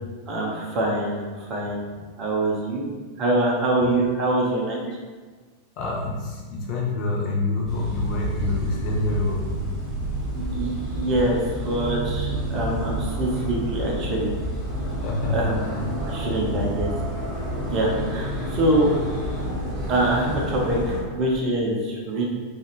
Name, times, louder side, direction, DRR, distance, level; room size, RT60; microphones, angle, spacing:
voice 1, 0.3-1.9 2.2-2.9 3.2-4.8 10.3-14.3 15.3-15.7 16.1-16.9 17.7-18.9 19.9-22.2, right 1 dB, 35° right, -3 dB, 0.6 m, -24 dB
voice 2, 5.8-9.4 15.0-15.5 16.2-16.7, left 2 dB, 40° left, -3 dB, 0.6 m, -27 dB
sound 1, 7.7-21.0, right 1 dB, 5° left, 1.2 m, -29 dB
2.5 x 2.4 x 2.9 m, 1.4 s
figure-of-eight pair, 90°, 0 cm